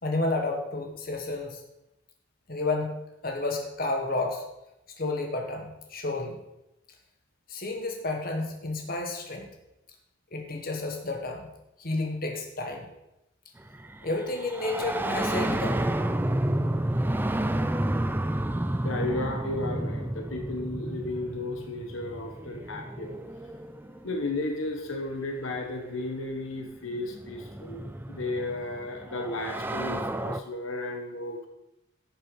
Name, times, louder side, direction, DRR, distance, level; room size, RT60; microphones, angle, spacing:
voice 1, 0.0-1.6 2.5-3.0 3.2-4.4 5.0-6.4 7.5-9.5 10.3-11.5 11.8-12.9 14.0-15.8, left 2 dB, 45° left, 2 dB, 1.6 m, -31 dB
sound 1, 13.7-24.3 25.5-25.6 26.7-30.4, right 1 dB, 10° right, 0.4 m, -31 dB
voice 2, 18.8-23.2 24.0-31.5, left 2 dB, 80° left, 3 dB, 1.4 m, -34 dB
11.5 x 6.8 x 5.4 m, 0.90 s
head